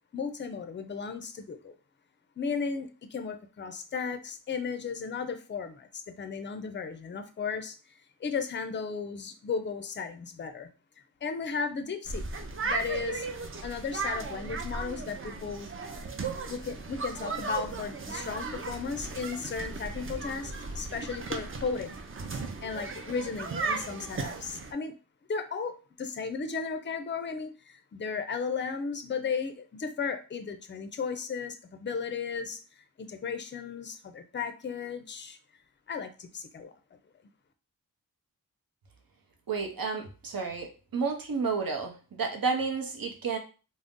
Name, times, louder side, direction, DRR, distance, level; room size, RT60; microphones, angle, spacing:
voice 1, 0.1-1.7 2.4-7.7 8.2-10.7 11.2-12.2 12.6-13.3 13.6-15.7 16.5-22.0 22.6-24.9 25.3-35.4 35.9-36.7, left 5 dB, 35° left, 7 dB, 0.4 m, -35 dB
sound 1, 12.1-24.7, right 3 dB, 35° right, 0.4 m, -36 dB
voice 2, 39.5-43.4, right 5 dB, 70° right, 3 dB, 0.7 m, -31 dB
2.5 x 2.0 x 3.5 m, 0.34 s
wide cardioid pair, 85°, 36 cm